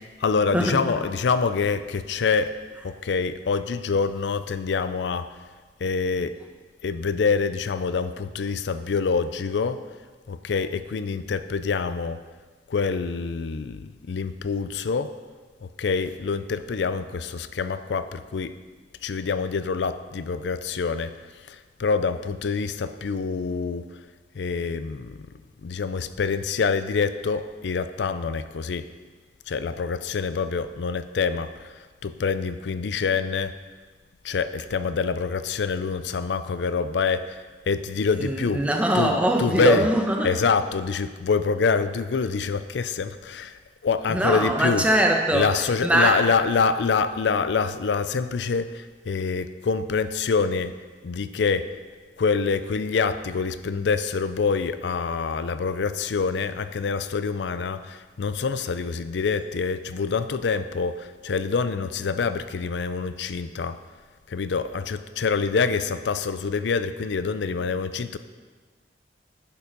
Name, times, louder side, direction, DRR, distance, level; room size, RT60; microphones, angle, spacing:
voice 1, 0.2-2.5 2.8-5.3 5.8-6.4 6.8-9.8 10.3-12.2 12.7-15.1 15.6-18.5 19.0-23.9 24.3-25.2 25.6-28.9 29.5-33.5 34.2-38.6 38.9-39.9 40.2-44.9 45.3-50.7 51.0-51.8 52.2-63.8 64.3-68.2, left 5 dB, 80° left, 12 dB, 0.4 m, -26 dB
voice 2, 38.2-40.3 44.1-45.5 45.8-46.2, right 1 dB, 5° right, 2 dB, 1.0 m, -22 dB
10.5 x 7.1 x 5.2 m, 1.4 s
head